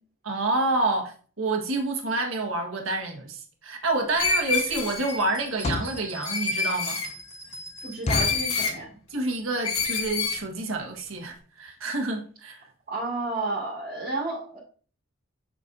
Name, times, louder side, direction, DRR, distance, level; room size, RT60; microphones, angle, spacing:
voice 1, 0.2-7.0 9.1-12.6, right 2 dB, 75° right, 1.6 m, -28 dB
sound 1, 3.8-4.0 4.5-4.7 5.4-6.0 6.6-6.7 7.0-7.1 7.5-7.6 8.1-8.6 9.2-9.4 9.7-9.8 10.0-10.3 10.8-10.9 11.2-11.3 11.7-11.8 12.0-12.1, left 2 dB, 30° left, 0.4 m, -30 dB
Screech, 4.2-5.2 6.2-7.1 8.1-8.8 9.6-10.4, left 4 dB, 90° left, 1.5 m, -27 dB
sound 2, 4.9-8.2, right 1 dB, 15° left, 1.5 m, -43 dB
voice 2, 7.8-8.9 12.9-14.6, right 2 dB, 40° right, 2.1 m, -31 dB
8.0 x 6.4 x 2.7 m
head